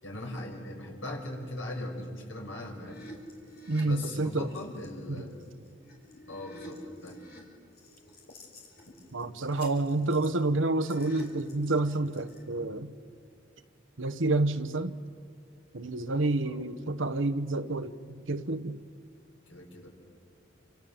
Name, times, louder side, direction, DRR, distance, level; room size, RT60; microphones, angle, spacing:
voice 1, 0.0-3.0 3.8-5.4 6.3-7.2 16.4-16.6 19.5-19.9, left 1 dB, 85° left, 6.1 m, -39 dB
sound 1, 2.9-4.8 5.4-7.4 7.7-12.4, equal, 55° left, 5.3 m, -49 dB
voice 2, 3.7-4.5 5.2-5.3 9.1-12.9 14.0-14.9 15.7-17.9 18.3-18.8, right 2 dB, 80° right, 1.1 m, -29 dB
29.0 x 27.5 x 7.3 m
head